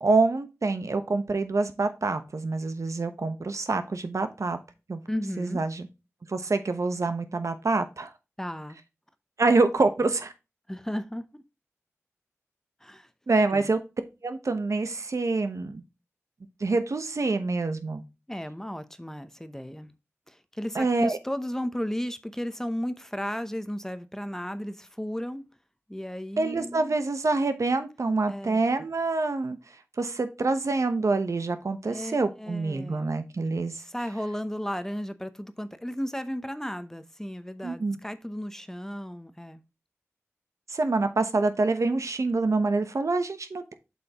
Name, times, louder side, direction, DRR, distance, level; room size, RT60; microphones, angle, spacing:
voice 1, 0.0-4.6 4.9-5.0 5.4-5.9 6.3-8.1 9.4-10.3 13.3-13.8 14.2-15.8 16.6-18.0 20.7-21.2 26.4-29.6 30.0-33.8 37.6-38.0 40.7-43.7, right 3 dB, 75° right, 0.9 m, -26 dB
voice 2, 5.1-5.6 8.4-8.8 10.7-11.4 12.8-13.1 13.5-13.7 18.3-19.9 20.3-25.4 25.9-27.0 28.3-28.6 31.8-33.1 33.8-39.6, equal, 10° left, 0.7 m, -34 dB
7.8 x 5.7 x 2.9 m
wide cardioid pair, 55°, 5 cm